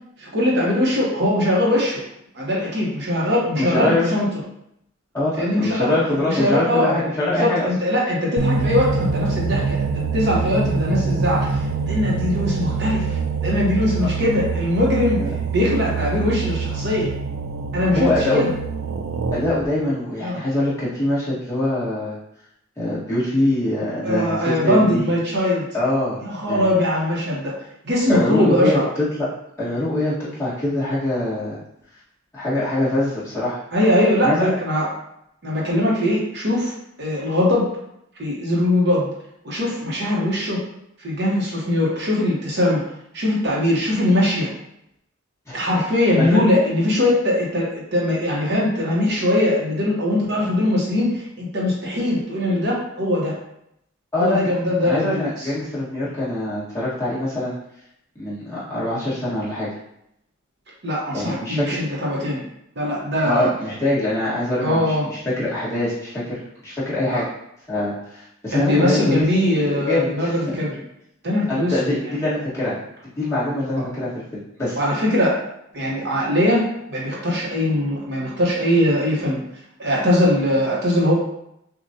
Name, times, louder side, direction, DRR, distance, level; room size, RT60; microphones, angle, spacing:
voice 1, 0.2-2.0 2.3-4.3 5.4-6.0 6.3-17.1 17.7-18.5 20.2-20.4 24.0-25.7 26.2-27.5 27.8-28.8 33.7-34.9 35.4-36.7 37.0-37.7 38.2-39.1 39.4-40.6 41.0-42.8 43.1-44.5 45.5-53.4 54.2-55.5 60.8-62.4 62.8-63.5 64.6-65.1 67.0-67.2 68.5-70.8 71.2-72.0 73.7-73.8 74.7-75.4 75.7-79.4 79.8-81.1, left 1 dB, 50° right, -4 dB, 1.0 m, -21 dB
voice 2, 3.5-4.1 5.1-7.7 15.2-15.3 17.9-18.4 19.3-22.2 22.8-25.1 25.7-26.2 26.5-26.7 28.1-29.3 29.6-31.6 32.3-33.6 34.2-34.5 45.5-45.7 46.2-46.4 54.1-54.5 54.8-57.6 58.1-59.7 61.1-61.8 63.2-67.2 67.7-69.3 69.6-70.3 71.5-72.8 73.2-74.8, left 1 dB, 15° left, -10 dB, 1.5 m, -23 dB
sound 1, 8.4-19.6, right 5 dB, 75° right, 0.5 m, -25 dB
6.2 x 2.3 x 2.7 m, 0.78 s
head